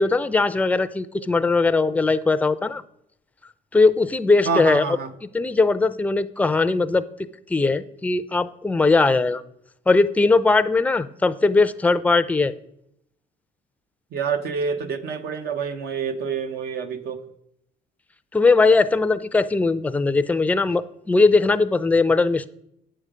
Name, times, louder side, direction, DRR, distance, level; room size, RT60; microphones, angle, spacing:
voice 1, 0.0-2.8 3.7-4.8 5.3-9.4 9.9-12.5 18.3-22.5, left 3 dB, 10° left, 12 dB, 0.4 m, -19 dB
voice 2, 4.4-5.1 14.1-17.2, right 5 dB, 65° right, 9 dB, 0.9 m, -27 dB
8.9 x 6.7 x 4.9 m, 0.74 s
cardioid pair, 110°, 17 cm